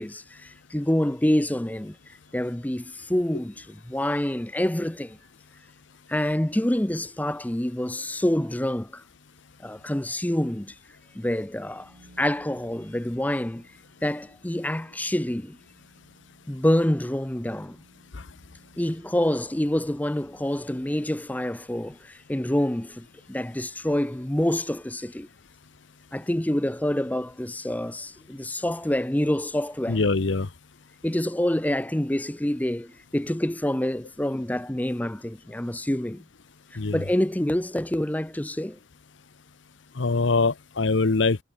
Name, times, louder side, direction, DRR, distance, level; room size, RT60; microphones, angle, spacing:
voice 1, 0.0-2.0 2.3-5.2 6.1-9.0 9.6-10.7 11.1-11.9 12.2-13.7 14.0-15.6 16.5-17.8 18.8-25.3 26.1-30.0 31.0-36.2 36.9-38.8, left 1 dB, 10° left, 0.6 m, -27 dB
sound 1, 11.5-21.4, right 1 dB, 70° right, 4.5 m, -58 dB
voice 2, 29.9-30.5 36.8-37.0 40.0-41.4, left 3 dB, 70° left, 0.8 m, -23 dB
head